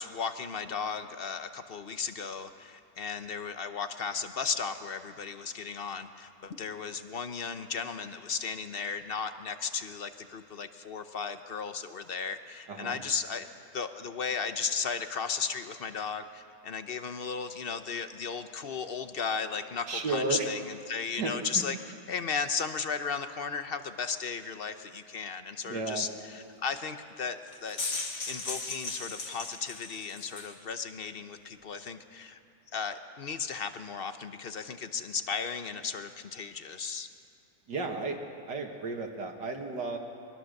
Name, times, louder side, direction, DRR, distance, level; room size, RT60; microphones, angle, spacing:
voice 1, 0.0-13.5 13.7-21.8 22.1-27.8 28.3-32.4 32.7-37.1, left 5 dB, 45° left, 9 dB, 0.8 m, -35 dB
voice 2, 12.7-13.0 19.9-20.5 21.2-21.6 25.6-26.1 37.7-38.2 38.5-40.0, right 3 dB, 75° right, 2 dB, 2.4 m, -33 dB
sound 1, 27.5-30.5, left 3 dB, 70° left, 2.9 m, -37 dB
23.0 x 21.5 x 6.6 m, 2.6 s
omnidirectional pair, 1.9 m